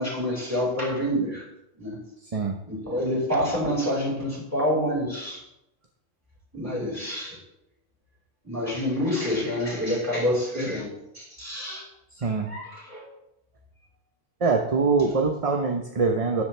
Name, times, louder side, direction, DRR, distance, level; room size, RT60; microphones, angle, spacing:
voice 1, 0.0-1.4 1.8-2.0 2.7-5.4 6.5-7.4 8.4-10.9 11.1-11.9 12.4-13.1, equal, 10° right, -4 dB, 5.2 m, -27 dB
voice 2, 12.2-12.5 14.4-16.4, right 4 dB, 30° right, 3 dB, 0.9 m, -23 dB
13.0 x 10.5 x 3.4 m, 0.82 s
omnidirectional pair, 1.3 m